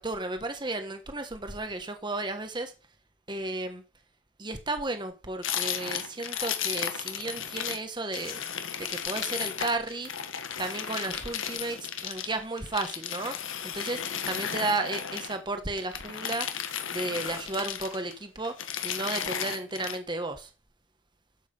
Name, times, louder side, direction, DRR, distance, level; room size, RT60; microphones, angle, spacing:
voice 1, 0.0-2.7 3.3-3.8 4.4-8.4 8.8-10.1 10.6-13.4 13.6-16.5 16.9-18.6 18.8-20.5, right 2 dB, 20° right, 1.3 m, -33 dB
sound 1, 5.4-7.8 8.1-15.4 15.8-18.1 18.4-20.0, left 8 dB, 75° left, 1.5 m, -34 dB
12.5 x 7.5 x 5.4 m
head